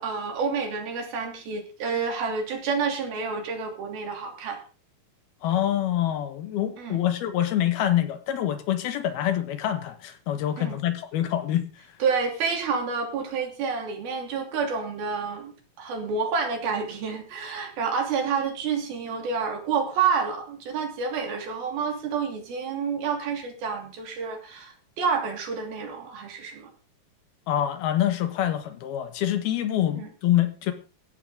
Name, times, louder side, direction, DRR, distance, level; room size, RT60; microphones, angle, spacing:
voice 1, 0.0-4.6 6.8-7.0 10.6-10.8 12.0-26.7 29.9-30.1, right 5 dB, 75° right, 4.9 m, -29 dB
voice 2, 5.4-11.6 27.5-30.7, left 11 dB, 85° left, 3.4 m, -26 dB
16.0 x 13.0 x 3.8 m
omnidirectional pair, 4.3 m